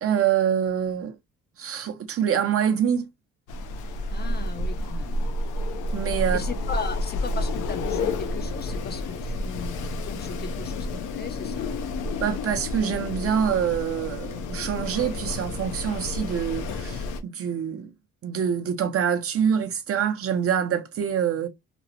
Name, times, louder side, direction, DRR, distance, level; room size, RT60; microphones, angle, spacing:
voice 1, 0.0-1.2 1.6-3.1 5.9-6.4 12.2-17.9 18.2-21.5, right 8 dB, 50° right, 0.6 m, -25 dB
Wind, 3.5-17.2, left 2 dB, 80° left, 0.6 m, -30 dB
voice 2, 4.1-5.4 6.3-11.7, left 5 dB, 35° left, 0.4 m, -37 dB
2.9 x 2.0 x 2.5 m
cardioid pair, 90°, 30 cm